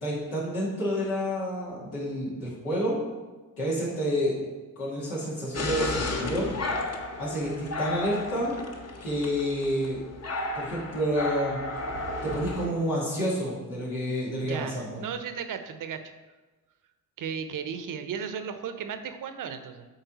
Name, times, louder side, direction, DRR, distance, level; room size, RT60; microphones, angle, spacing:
voice 1, 0.0-3.0 3.6-4.4 4.8-6.5 7.2-8.6 9.0-10.0 10.6-11.6 12.2-15.0, equal, 90° left, -7 dB, 2.2 m, -29 dB
sound 1, 5.5-12.7, left 2 dB, 35° left, 1.0 m, -33 dB
voice 2, 14.4-16.1 17.2-19.8, right 7 dB, 50° right, 9 dB, 0.7 m, -35 dB
7.9 x 3.9 x 4.0 m, 1.2 s
hypercardioid pair, 45°, 42 cm